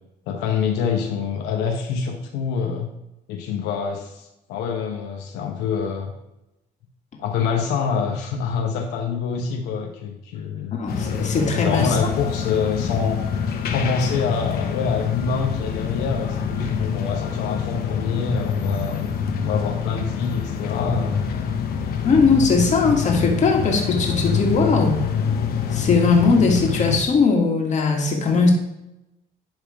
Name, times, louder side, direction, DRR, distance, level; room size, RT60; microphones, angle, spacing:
voice 1, 0.3-2.9 3.3-6.1 7.2-10.8 11.5-13.2 13.7-19.0 19.4-21.3, left 6 dB, 90° left, 2 dB, 1.0 m, -26 dB
voice 2, 10.7-12.0 22.0-25.1 25.7-28.5, left 4 dB, 45° left, 1 dB, 1.9 m, -19 dB
sound 1, 10.9-27.0, left 7 dB, 65° left, 1.0 m, -26 dB
10.5 x 3.7 x 4.9 m, 0.90 s
cardioid pair, 110°, 17 cm